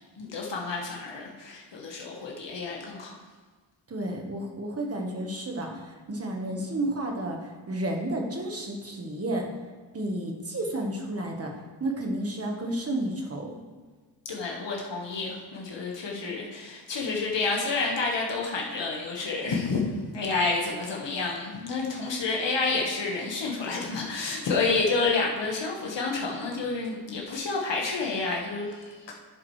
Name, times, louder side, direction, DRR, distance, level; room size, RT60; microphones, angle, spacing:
voice 1, 0.2-3.1 14.3-29.1, left 3 dB, 80° left, -2 dB, 1.6 m, -29 dB
voice 2, 3.9-9.5 9.9-11.5 11.8-13.6, right 1 dB, 35° right, 1 dB, 1.4 m, -31 dB
11.0 x 8.5 x 3.3 m, 1.4 s
wide cardioid pair, 145°, 43 cm